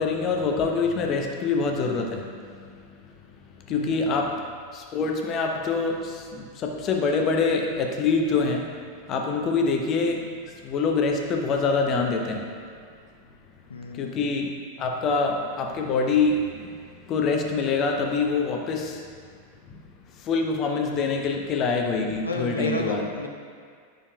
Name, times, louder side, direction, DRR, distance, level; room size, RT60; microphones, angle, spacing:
voice 1, 0.0-2.8 3.7-4.4 4.7-12.5 13.9-19.0 19.7-19.9 20.1-23.1, left 4 dB, 35° left, 2 dB, 0.8 m, -25 dB
voice 2, 3.7-4.3 13.7-14.3 22.2-23.3, left 2 dB, 75° left, 2 dB, 0.7 m, -32 dB
9.9 x 6.3 x 2.3 m, 2.1 s
figure-of-eight pair, 90°, 0 cm